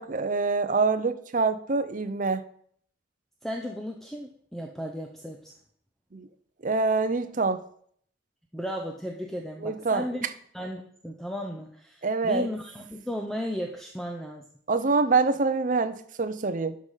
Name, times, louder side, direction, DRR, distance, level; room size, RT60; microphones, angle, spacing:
voice 1, 0.0-2.4 6.1-6.3 6.6-7.6 9.6-10.0 12.0-12.5 14.7-16.8, right 4 dB, 40° right, 0.6 m, -25 dB
voice 2, 3.4-5.5 8.5-10.3 10.5-14.4, equal, ahead, 0.6 m, -35 dB
12.0 x 4.9 x 5.6 m
head